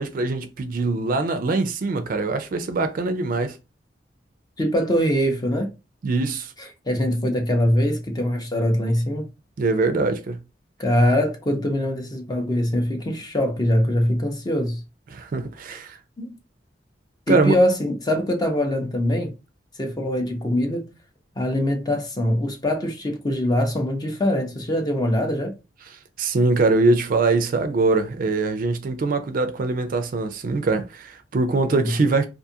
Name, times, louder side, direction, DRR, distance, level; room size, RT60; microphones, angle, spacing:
voice 1, 0.0-3.6 6.0-6.5 9.6-10.4 15.1-16.0 17.3-17.6 26.2-32.3, right 3 dB, 50° right, 0.4 m, -22 dB
voice 2, 4.6-5.7 6.9-9.3 10.8-14.8 16.2-16.4 17.3-19.3 19.8-20.9 21.4-25.5 31.6-31.9, left 1 dB, 20° left, 0.6 m, -23 dB
2.5 x 2.4 x 2.7 m
head